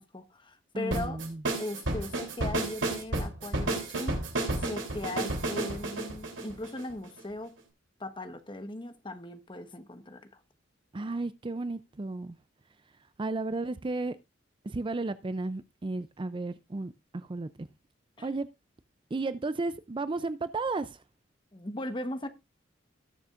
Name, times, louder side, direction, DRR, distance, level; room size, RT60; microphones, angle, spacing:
voice 1, 0.0-1.2 1.6-4.2 4.6-7.5 8.0-10.2 18.2-18.3 21.5-22.3, left 1 dB, 25° left, 1.2 m, -38 dB
voice 2, 0.7-1.4 10.9-12.4 13.2-14.2 14.6-17.7 18.2-18.5 19.1-21.0, right 3 dB, 25° right, 0.4 m, -33 dB
sound 1, 0.9-7.2, right 2 dB, 70° right, 3.3 m, -31 dB
19.0 x 7.1 x 2.5 m
head